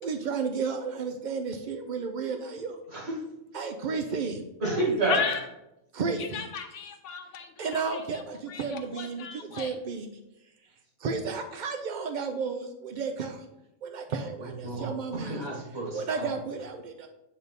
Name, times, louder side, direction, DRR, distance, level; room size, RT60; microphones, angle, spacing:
voice 1, 0.0-2.8 3.5-4.4 5.9-6.5 7.6-10.2 11.0-13.4 13.8-15.4 15.9-17.1, right 5 dB, 85° right, 6 dB, 0.4 m, -33 dB
voice 2, 2.9-3.2 4.6-5.2 14.4-14.9 15.2-16.0, right 2 dB, 50° right, -3 dB, 2.1 m, -29 dB
voice 3, 5.1-5.5 6.2-8.2 8.5-9.8, left 6 dB, 65° left, 6 dB, 0.9 m, -35 dB
8.5 x 3.4 x 4.0 m, 0.89 s
omnidirectional pair, 1.4 m